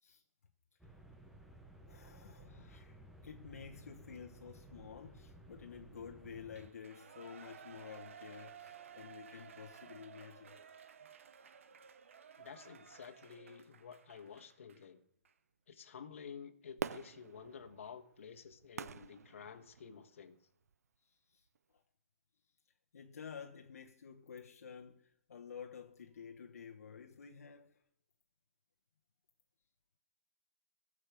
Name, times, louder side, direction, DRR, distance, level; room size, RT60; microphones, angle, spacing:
sound 1, 0.8-6.7, right 2 dB, 5° right, 0.7 m, -57 dB
voice 1, 1.9-10.6 21.0-21.8 22.9-27.8, left 7 dB, 70° left, 1.2 m, -51 dB
Shout / Cheering, 6.5-14.8 15.2-15.3, right 7 dB, 55° right, 1.0 m, -56 dB
voice 2, 12.4-15.0 15.7-20.4, left 7 dB, 55° left, 1.6 m, -51 dB
Fireworks, 16.8-20.1 20.7-20.8, right 7 dB, 80° right, 0.5 m, -45 dB
17.0 x 6.7 x 8.4 m
hypercardioid pair, 175°, 8 cm